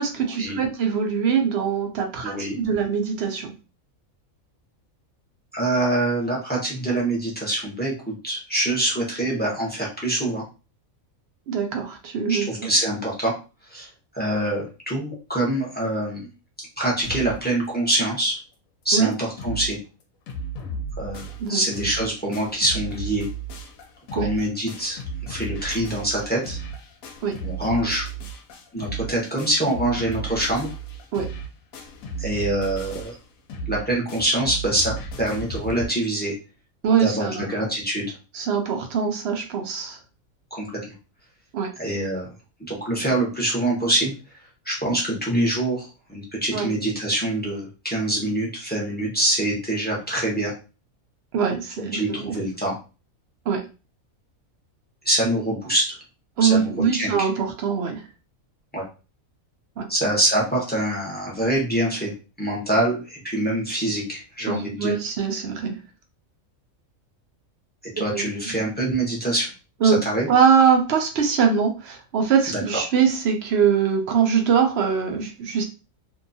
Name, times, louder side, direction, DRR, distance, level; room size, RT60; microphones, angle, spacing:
voice 1, 0.0-3.5 11.5-12.7 18.9-19.1 21.4-21.6 24.2-24.3 27.2-27.4 31.1-31.3 36.8-37.5 38.3-40.0 41.5-41.7 46.5-46.7 51.3-52.4 53.5-53.7 56.4-58.0 59.8-59.9 64.5-65.8 68.1-68.5 69.8-70.0 70.3-75.6, right 6 dB, 60° right, 4 dB, 0.7 m, -22 dB
voice 2, 2.2-2.6 5.5-10.4 12.3-13.3 13.7-13.9 14.1-16.2 16.8-18.4 18.8-19.8 21.0-23.2 24.1-25.0 25.3-26.6 27.4-28.0 28.7-30.7 32.2-33.1 33.7-34.9 35.2-36.3 37.0-38.1 40.5-40.7 41.8-42.3 42.6-44.1 44.7-50.5 51.9-52.7 55.0-56.0 56.4-57.3 58.7-58.8 59.9-62.1 62.4-64.9 68.0-69.5 70.0-70.3 72.5-72.8, right 1 dB, 10° left, -4 dB, 0.5 m, -25 dB
sound 1, 17.0-17.5 17.9-18.0 18.2-18.3 18.8-18.9 19.1-19.7 20.0-35.9, right 3 dB, 75° left, 1.0 m, -34 dB
2.7 x 2.2 x 2.6 m, 0.32 s
omnidirectional pair, 1.4 m